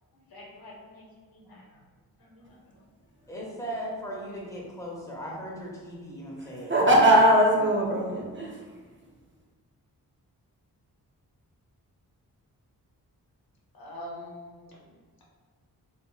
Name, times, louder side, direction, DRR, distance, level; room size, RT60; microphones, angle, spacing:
voice 1, 0.1-1.8 2.2-2.7 13.7-14.9, left 1 dB, 65° left, -3 dB, 0.8 m, -46 dB
voice 2, 3.3-6.7, equal, 10° left, -4 dB, 0.8 m, -37 dB
voice 3, 6.4-8.8, right 1 dB, 30° right, -3 dB, 0.6 m, -21 dB
2.6 x 2.5 x 2.2 m, 1.5 s
cardioid pair, 50°, 38 cm